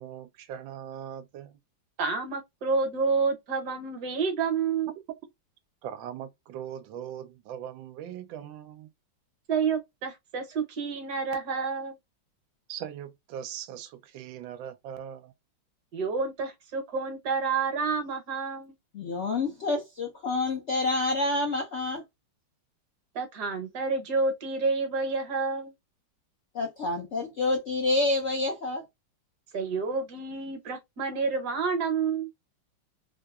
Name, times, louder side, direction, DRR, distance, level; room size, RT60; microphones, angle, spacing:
voice 1, 0.0-1.6 4.9-5.0 5.8-8.9 12.7-15.3, right 10 dB, 90° right, 1.3 m, -40 dB
voice 2, 2.0-4.9 9.5-12.0 15.9-18.7 23.1-25.7 29.5-32.3, right 4 dB, 65° right, 1.3 m, -29 dB
voice 3, 18.9-22.0 26.5-28.8, left 2 dB, 65° left, 0.7 m, -28 dB
3.4 x 2.7 x 2.2 m
omnidirectional pair, 2.0 m